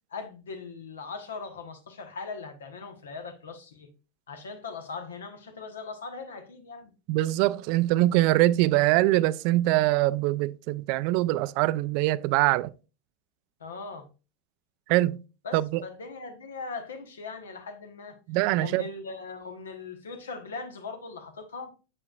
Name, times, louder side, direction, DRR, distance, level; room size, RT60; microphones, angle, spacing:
voice 1, 0.1-3.9 4.3-6.9 13.6-14.1 15.4-18.2 18.6-21.7, left 4 dB, 80° left, 1.1 m, -40 dB
voice 2, 7.1-12.7 14.9-15.2 15.5-15.8 18.3-18.9, right 17 dB, 55° right, 0.3 m, -23 dB
7.6 x 6.3 x 2.4 m
hypercardioid pair, 90°, 0 cm